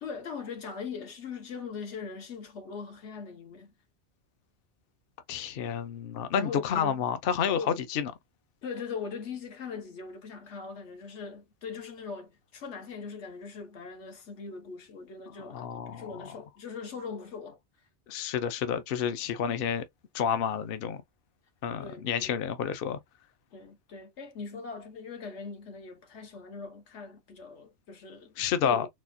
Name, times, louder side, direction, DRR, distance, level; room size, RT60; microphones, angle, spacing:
voice 1, 0.0-3.7 6.3-7.1 7.6-7.8 8.6-17.6 21.8-22.4 23.5-28.3 28.6-28.9, left 5 dB, 80° left, 1.3 m, -40 dB
voice 2, 5.3-8.1 15.5-16.2 18.1-19.8 20.1-21.0 21.6-23.0 28.4-28.9, left 8 dB, 60° left, 0.7 m, -29 dB
4.1 x 2.3 x 2.6 m
omnidirectional pair, 1.2 m